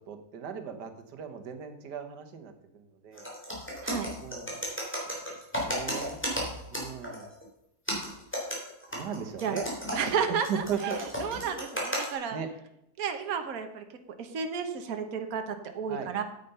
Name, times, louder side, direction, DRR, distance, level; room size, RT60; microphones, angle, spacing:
voice 1, 0.1-3.3 4.2-4.6 5.3-6.2 6.7-7.3 8.9-9.7 10.1-11.0 12.3-12.5 15.9-16.1, right 7 dB, 90° right, 7 dB, 1.7 m, -37 dB
sound 1, 3.1-7.4 7.9-12.1, equal, 5° left, 3.4 m, -34 dB
voice 2, 9.9-12.4 13.0-13.8 14.2-15.4 15.7-16.2, right 7 dB, 60° right, 6 dB, 1.5 m, -32 dB
9.2 x 8.2 x 5.4 m, 0.82 s
omnidirectional pair, 1.7 m